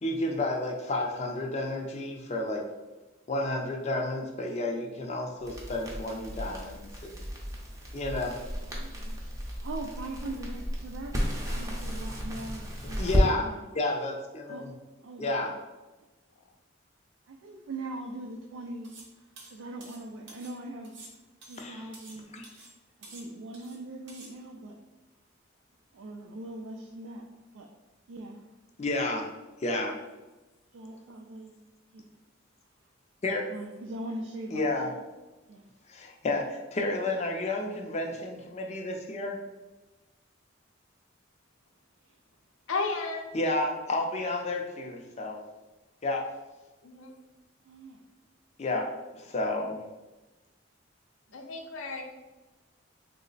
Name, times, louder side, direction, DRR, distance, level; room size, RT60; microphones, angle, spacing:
voice 1, 0.0-2.6 3.3-7.3 7.9-8.4 13.0-13.5 13.7-14.7 15.2-15.5 21.6-21.8 22.3-22.5 28.8-29.3 29.6-30.0 33.2-33.5 34.5-34.9 35.9-39.4 43.3-45.4 46.0-46.2 48.6-48.9 49.1-49.8, left 2 dB, 35° left, 2 dB, 0.4 m, -31 dB
Crackle, 5.4-13.3, equal, 15° right, 0.5 m, -32 dB
voice 2, 8.6-11.2 11.4-13.7 14.5-14.7 15.0-15.5 17.3-20.9 21.4-22.3 23.0-24.8 25.9-27.2 27.5-27.7 28.1-28.5 30.7-31.6 31.9-32.0 33.5-34.9 35.5-35.7 42.0-42.2 47.6-48.0 48.7-48.9 51.3-51.4, right 2 dB, 80° right, 1 dB, 0.3 m, -41 dB
sound 1, 18.8-19.1 19.4-20.6 20.8-22.2 22.4-22.7 23.0-23.8 24.1-24.3, right 3 dB, 60° right, 0.7 m, -50 dB
voice 3, 42.7-43.3 46.8-47.1 51.3-52.0, left 4 dB, 85° left, 2 dB, 0.6 m, -33 dB
3.1 x 2.0 x 3.9 m, 1.1 s
head